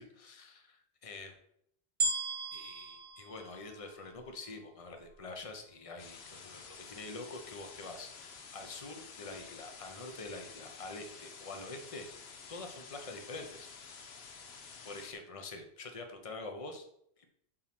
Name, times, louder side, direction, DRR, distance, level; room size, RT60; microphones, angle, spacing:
voice 1, 0.0-1.3 2.5-12.1 12.5-14.2 14.8-16.8, left 3 dB, 35° left, 4 dB, 0.9 m, -46 dB
sound 1, 2.0-4.4 5.0-5.1, right 3 dB, 50° right, 1.1 m, -36 dB
sound 2, 6.0-15.1, left 5 dB, 75° left, 1.1 m, -51 dB
7.7 x 3.1 x 5.9 m, 0.72 s
omnidirectional pair, 1.1 m